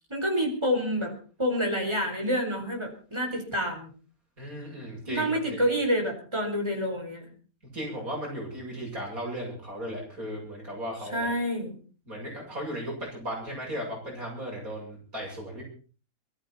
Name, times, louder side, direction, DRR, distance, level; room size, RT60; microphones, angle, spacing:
voice 1, 0.1-1.1 1.4-3.9 5.1-7.2 11.1-11.8, equal, 15° right, 2 dB, 4.8 m, -28 dB
voice 2, 4.4-5.6 7.7-11.3 12.1-15.6, equal, 55° right, -1 dB, 8.4 m, -36 dB
22.5 x 14.0 x 4.3 m, 0.39 s
omnidirectional pair, 1.7 m